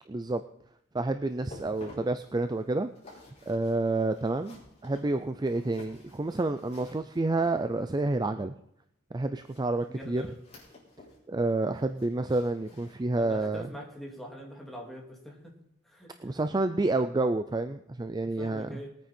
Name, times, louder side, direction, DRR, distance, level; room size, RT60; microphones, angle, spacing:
voice 1, 0.1-0.4 0.9-2.9 3.5-4.6 4.8-8.5 9.1-10.3 11.3-13.7 16.2-18.8, right 2 dB, 20° right, 9 dB, 0.4 m, -29 dB
sound 1, 1.3-8.0 9.4-11.2 11.5-13.5 13.9-14.1 14.6-14.7, left 2 dB, 35° left, 5.1 m, -53 dB
voice 2, 9.7-10.3 13.1-15.5 15.8-16.1 18.2-18.9, equal, ahead, -2 dB, 2.7 m, -43 dB
21.0 x 9.1 x 4.4 m, 0.75 s
head